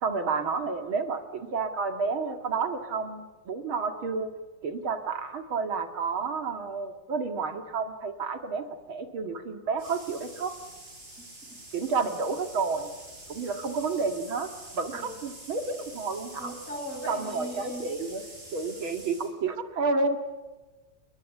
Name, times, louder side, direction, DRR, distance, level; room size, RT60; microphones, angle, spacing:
voice 1, 0.0-4.3 4.6-10.6 11.7-12.9 13.3-16.5 17.1-18.2 18.5-20.2, right 4 dB, 75° right, 7 dB, 3.0 m, -30 dB
sound 1, 9.8-19.3, right 1 dB, 25° right, 7.7 m, -46 dB
voice 2, 16.4-18.0, equal, 35° left, 4 dB, 6.9 m, -38 dB
30.0 x 22.0 x 8.4 m, 1.2 s
omnidirectional pair, 2.2 m